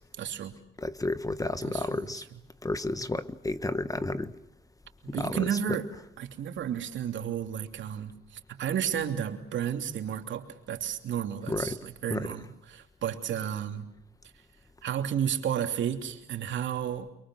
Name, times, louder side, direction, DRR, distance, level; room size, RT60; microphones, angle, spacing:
voice 1, 0.2-0.5 1.6-2.3 5.1-5.9 6.2-13.9 14.8-17.1, right 9 dB, 70° right, 3.0 m, -32 dB
voice 2, 0.8-2.2 2.6-4.3 5.1-5.5 11.5-11.8 12.1-12.3, left 2 dB, 15° left, 1.3 m, -31 dB
30.0 x 24.0 x 6.3 m
cardioid pair, 90°, 20 cm